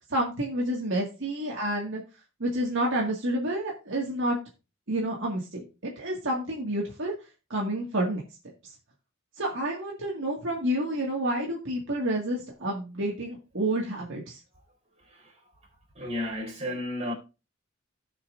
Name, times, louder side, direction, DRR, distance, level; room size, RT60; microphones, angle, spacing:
voice 1, 0.1-2.0 2.4-4.4 4.9-7.1 7.5-8.2 8.6-8.7 9.4-14.4, right 1 dB, 65° right, 2.0 m, -29 dB
voice 2, 15.0-15.4 15.9-17.1, left 1 dB, 35° right, 4.0 m, -33 dB
17.0 x 5.7 x 2.6 m
head